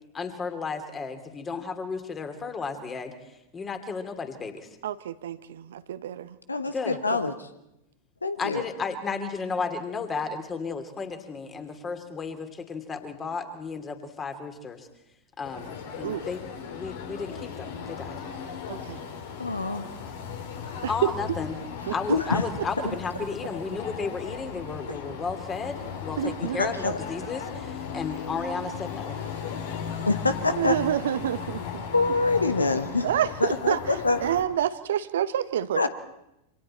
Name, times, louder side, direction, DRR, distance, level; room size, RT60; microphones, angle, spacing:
voice 1, 0.1-3.1 3.5-4.7 6.7-7.2 8.4-14.9 15.4-16.4 16.7-18.2 20.9-21.6 21.9-29.2, left 4 dB, 20° left, 7 dB, 2.8 m, -33 dB
voice 2, 4.8-6.4 16.0-16.2 18.7-19.0 20.8-21.1 21.9-22.0 26.2-26.7 30.6-31.8 33.0-33.8 34.2-35.9, right 11 dB, 60° right, 13 dB, 1.0 m, -28 dB
voice 3, 6.5-7.5 8.2-8.6 19.4-19.9 22.1-22.4 26.4-27.0 30.1-30.8 31.9-33.1 33.4-34.2 35.7-35.9, left 3 dB, 80° left, 11 dB, 1.3 m, -25 dB
sound 1, 15.4-34.4, left 6 dB, 60° left, 2.9 m, -37 dB
28.0 x 26.0 x 4.4 m, 0.85 s
figure-of-eight pair, 90°, 0 cm